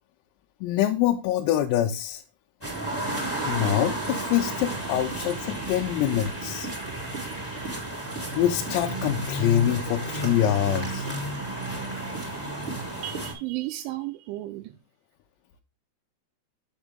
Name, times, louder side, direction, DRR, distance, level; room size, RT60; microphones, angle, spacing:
voice 1, 0.6-2.2 3.5-6.7 8.4-11.1, left 11 dB, 90° left, 3.4 m, -25 dB
sound 1, 2.6-13.3, right 2 dB, 5° left, 1.3 m, -32 dB
voice 2, 13.0-14.8, right 17 dB, 85° right, 2.8 m, -33 dB
7.3 x 7.3 x 3.5 m
omnidirectional pair, 5.9 m